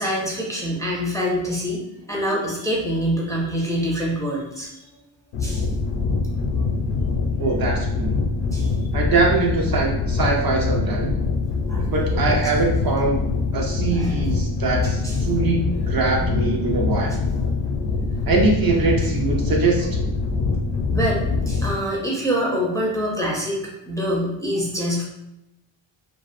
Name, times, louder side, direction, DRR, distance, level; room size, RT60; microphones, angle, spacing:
voice 1, 0.0-4.8 5.4-5.7 8.4-8.7 11.7-12.5 13.9-14.2 15.0-15.2 15.6-15.8 16.2-16.3 17.1-17.2 20.9-25.0, equal, 5° left, -4 dB, 0.5 m, -26 dB
sound 1, 5.3-21.7, left 4 dB, 60° left, 0.5 m, -24 dB
voice 2, 7.4-8.2 8.9-11.1 11.9-13.2 13.5-17.2 18.3-20.0, right 3 dB, 50° right, 0 dB, 0.5 m, -22 dB
2.4 x 2.2 x 2.5 m, 0.87 s
cardioid pair, 100°, 48 cm